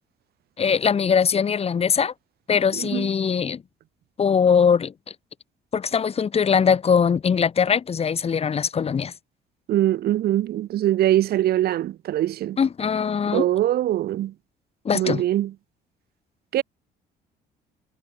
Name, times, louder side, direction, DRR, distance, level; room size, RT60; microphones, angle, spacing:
voice 1, 0.6-2.1 2.5-3.6 4.2-4.9 5.7-9.1 12.6-13.5 14.9-15.2, left 6 dB, 35° left, 3.5 m, -21 dB
voice 2, 2.7-3.1 9.7-12.6 13.3-14.3 14.9-15.5 16.5-16.6, right 13 dB, 65° right, 5.0 m, -22 dB
cardioid pair, 110°, 17 cm